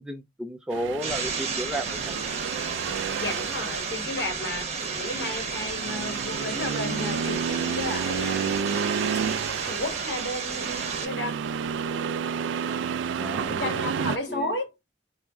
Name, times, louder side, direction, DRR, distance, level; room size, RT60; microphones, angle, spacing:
voice 1, 0.0-2.2 13.2-13.9 14.3-14.5, right 1 dB, 5° right, 0.4 m, -33 dB
Accelerating revving vroom, 0.7-14.2, right 7 dB, 90° right, 0.3 m, -31 dB
sound 1, 1.0-11.1, right 4 dB, 35° right, 0.8 m, -33 dB
voice 2, 3.2-8.7 9.6-11.4 13.6-14.7, left 1 dB, 65° left, 1.2 m, -33 dB
4.4 x 2.0 x 3.5 m
head